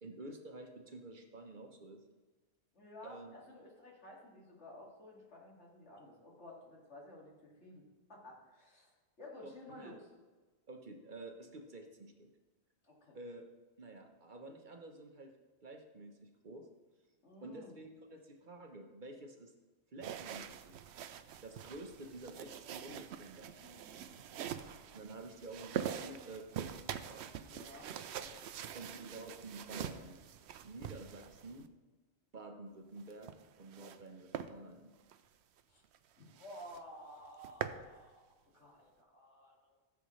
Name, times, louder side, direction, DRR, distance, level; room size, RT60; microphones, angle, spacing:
voice 1, 0.0-2.0 3.0-3.4 6.0-6.1 9.4-10.0 10.7-12.3 13.1-13.4 13.8-15.4 15.6-16.7 17.4-19.5 19.9-20.8 21.1-23.5 24.9-27.3 28.7-30.2 30.6-31.7 32.3-33.3 33.6-34.9, right 2 dB, 50° right, 4 dB, 1.0 m, -50 dB
voice 2, 2.7-7.8 8.1-8.9 9.2-10.1 12.8-13.2 17.2-17.7 23.5-24.3 27.4-28.3 35.7-35.8 36.3-39.8, left 1 dB, 85° left, -3 dB, 2.5 m, -54 dB
sound 1, 20.0-31.7 33.0-34.0 34.3-34.5 35.0-35.2 35.6-35.7 35.9-36.0 36.4-36.8 37.2-37.8, right 9 dB, 75° right, 0.8 m, -44 dB
14.0 x 7.2 x 3.2 m, 1.2 s
omnidirectional pair, 1.1 m